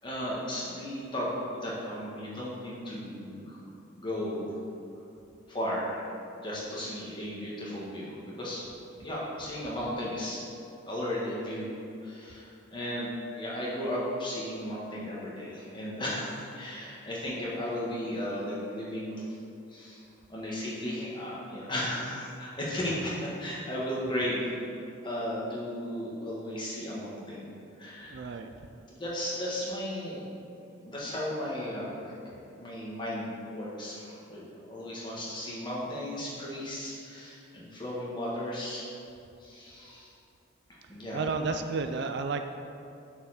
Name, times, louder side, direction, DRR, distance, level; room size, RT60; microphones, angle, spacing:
voice 1, 0.0-3.6 3.9-4.6 5.5-6.0 6.4-8.6 9.0-10.4 10.9-11.7 12.0-19.2 19.7-20.0 20.3-24.5 25.0-28.3 28.9-30.3 30.8-32.1 32.5-38.8 39.4-40.1 40.7-41.5, left 1 dB, 20° left, -6 dB, 1.6 m, -35 dB
voice 2, 28.1-28.5 41.1-42.5, right 4 dB, 55° right, 7 dB, 0.3 m, -31 dB
6.6 x 4.8 x 6.4 m, 2.6 s
head